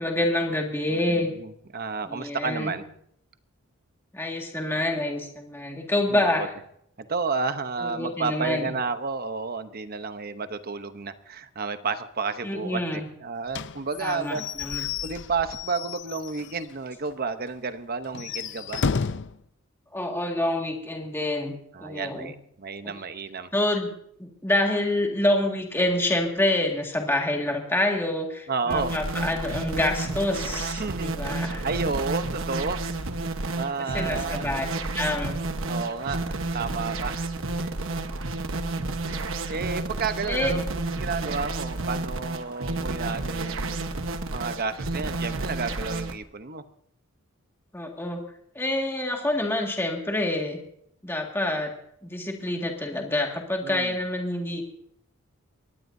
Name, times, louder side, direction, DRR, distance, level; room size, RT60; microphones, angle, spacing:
voice 1, 0.0-1.3 2.1-2.7 4.1-6.5 7.8-8.7 12.4-13.1 14.0-14.8 19.9-22.3 22.8-22.9 23.5-23.9 24.2-31.6 33.9-34.7 34.9-35.4 40.3-40.6 47.7-48.2 48.6-50.6 51.0-51.7 52.0-54.6, left 1 dB, 10° left, 1 dB, 2.0 m, -27 dB
voice 2, 0.9-2.9 6.1-6.5 7.0-14.4 14.8-18.9 21.7-23.5 28.5-28.9 30.7-31.1 31.6-32.9 33.5-34.4 35.7-37.2 37.6-37.7 39.5-43.8 44.3-46.6 53.6-54.0, right 4 dB, 45° right, 10 dB, 0.9 m, -31 dB
Slam / Squeak / Wood, 13.5-16.7 17.1-17.2 17.5-17.6 18.1-19.4, left 6 dB, 55° left, 0.5 m, -32 dB
sound 1, 28.7-46.2, right 2 dB, 65° right, 1.2 m, -31 dB
23.0 x 18.5 x 2.7 m, 0.70 s
head